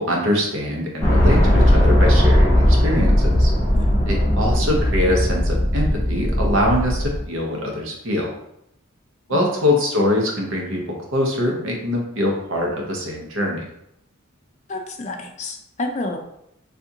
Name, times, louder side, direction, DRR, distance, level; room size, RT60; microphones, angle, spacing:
voice 1, 0.0-3.5 4.1-8.3 9.3-13.7, left 1 dB, 70° right, 0 dB, 0.8 m, -23 dB
sound 1, 1.0-7.2, equal, 10° left, 0.9 m, -17 dB
voice 2, 3.7-4.1 9.3-9.4 14.7-16.2, left 2 dB, 35° left, 4 dB, 0.3 m, -30 dB
3.5 x 2.5 x 2.7 m, 0.77 s
head